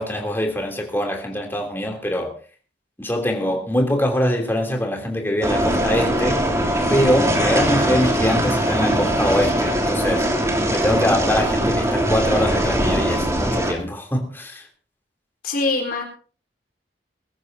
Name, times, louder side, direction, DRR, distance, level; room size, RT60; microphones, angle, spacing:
voice 1, 0.0-2.3 3.0-6.5 6.9-10.3 10.7-14.6, left 1 dB, 15° left, 2 dB, 3.1 m, -23 dB
sound 1, 5.4-13.7, right 1 dB, 15° right, 2.8 m, -21 dB
voice 2, 15.4-16.0, left 3 dB, 55° left, 2 dB, 4.3 m, -23 dB
22.0 x 14.0 x 2.8 m, 0.40 s
head